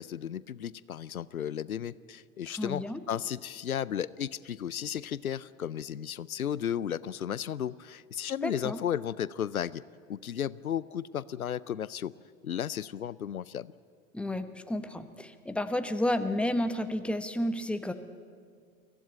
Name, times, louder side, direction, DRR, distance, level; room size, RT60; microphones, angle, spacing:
voice 1, 0.0-9.8 10.1-12.1 12.4-13.7, left 9 dB, 90° left, 20 dB, 0.5 m, -34 dB
voice 2, 2.5-3.0 8.4-8.8 14.1-17.9, left 1 dB, 5° left, 9 dB, 1.0 m, -31 dB
23.0 x 15.5 x 9.2 m, 2.1 s
figure-of-eight pair, 90°, 41 cm